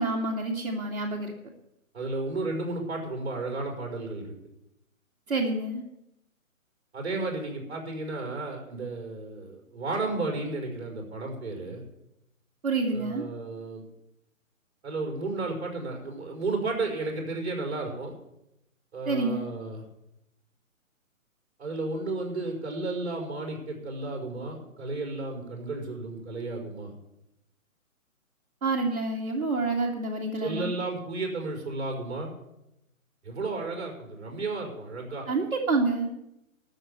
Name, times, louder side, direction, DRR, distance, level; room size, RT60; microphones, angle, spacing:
voice 1, 0.0-1.3 5.3-5.8 12.6-13.2 19.1-19.4 28.6-30.7 35.3-36.1, right 3 dB, 65° right, -3 dB, 2.3 m, -28 dB
voice 2, 1.9-4.3 6.9-11.8 12.9-13.8 14.8-18.2 18.9-19.8 21.6-26.9 30.4-32.3 33.2-35.3, right 3 dB, 50° right, 2 dB, 5.2 m, -33 dB
13.0 x 6.8 x 9.6 m, 0.85 s
figure-of-eight pair, 150°, 42 cm